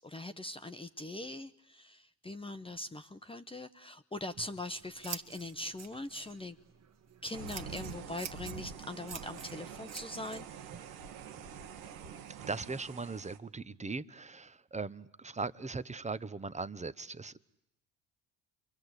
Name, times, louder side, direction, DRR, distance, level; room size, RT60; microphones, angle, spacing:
voice 1, 0.0-6.6 7.2-10.5, left 2 dB, 15° left, 10 dB, 1.1 m, -42 dB
Scissors, 4.1-12.3, right 7 dB, 40° right, 1.7 m, -49 dB
sound 1, 7.3-13.4, right 7 dB, 85° right, 1.9 m, -46 dB
voice 2, 12.5-17.4, right 4 dB, 15° right, 15 dB, 1.0 m, -39 dB
30.0 x 23.5 x 8.3 m, 0.90 s
hypercardioid pair, 65°, 40 cm